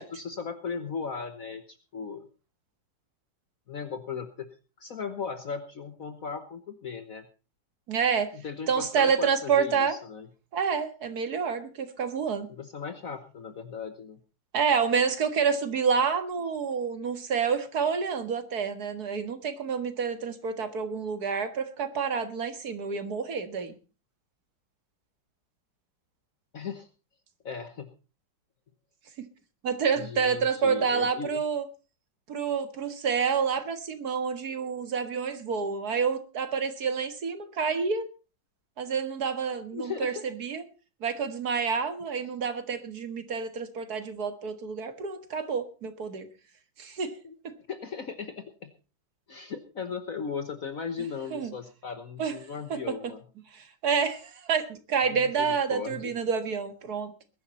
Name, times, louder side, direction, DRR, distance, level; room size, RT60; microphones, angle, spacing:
voice 1, 0.0-2.3 3.7-7.2 8.3-10.3 12.5-14.2 26.5-26.9 27.4-27.9 29.9-31.4 39.7-40.2 47.2-47.3 47.7-48.7 49.3-53.2 55.0-56.1, left 6 dB, 50° left, 9 dB, 1.4 m, -37 dB
voice 2, 7.9-8.3 8.7-10.0 10.5-12.5 14.5-23.7 29.6-31.6 32.3-38.1 38.8-40.6 41.0-46.3 46.8-47.1 51.3-51.5 52.2-52.3 52.7-52.8 53.5-57.1, right 6 dB, 55° right, 9 dB, 2.1 m, -28 dB
20.5 x 11.0 x 4.2 m, 0.34 s
omnidirectional pair, 2.0 m